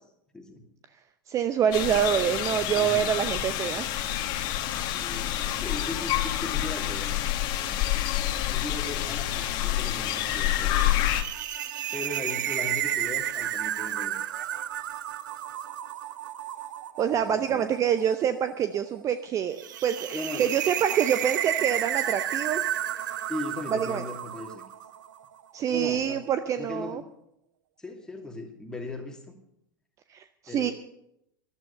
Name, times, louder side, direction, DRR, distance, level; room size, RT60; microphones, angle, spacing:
voice 1, 1.3-3.9 17.0-22.6 23.7-24.0 25.5-27.0 30.1-30.7, right 9 dB, 25° right, 11 dB, 0.7 m, -26 dB
sound 1, 1.7-11.2, left 12 dB, 40° left, 1.5 m, -28 dB
voice 2, 2.7-3.2 4.9-7.2 8.4-11.1 11.9-14.1 17.1-17.7 20.1-20.5 23.3-24.6 25.7-26.2 26.6-27.1 27.8-29.3 30.5-30.7, left 2 dB, 5° left, 2 dB, 2.7 m, -38 dB
sound 2, 10.8-25.2, right 11 dB, 60° right, 0.8 m, -32 dB
13.5 x 12.0 x 6.7 m, 0.80 s
figure-of-eight pair, 95°, 12 cm